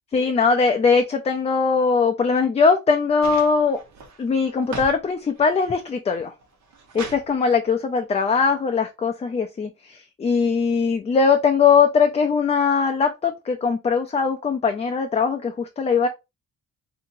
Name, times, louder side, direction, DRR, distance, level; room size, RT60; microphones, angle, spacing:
voice 1, 0.1-3.8 4.2-6.3 6.9-16.1, left 5 dB, 20° left, 0.4 m, -20 dB
sound 1, 3.2-5.0 5.3-5.9 6.4-7.3 8.5-8.6, right 4 dB, 65° right, 1.0 m, -38 dB
2.8 x 2.7 x 2.6 m
cardioid pair, 90°, 30 cm